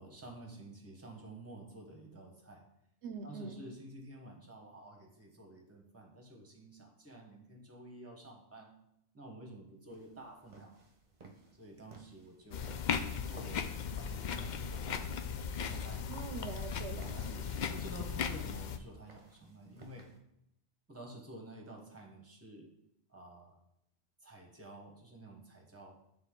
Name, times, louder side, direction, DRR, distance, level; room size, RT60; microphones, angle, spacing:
voice 1, 0.0-2.7 3.2-8.7 9.1-10.8 11.5-12.7 13.3-15.1 15.6-16.1 17.1-20.1 20.9-22.7 23.1-23.6 24.2-26.0, right 1 dB, 15° right, 2 dB, 1.1 m, -51 dB
voice 2, 3.0-3.6 16.1-17.5, right 5 dB, 80° right, 8 dB, 0.9 m, -44 dB
sound 1, 9.9-20.2, right 3 dB, 40° right, 0.9 m, -59 dB
sound 2, 12.5-18.8, left 7 dB, 60° left, 0.5 m, -37 dB
9.7 x 3.6 x 3.7 m, 0.78 s
omnidirectional pair, 1.2 m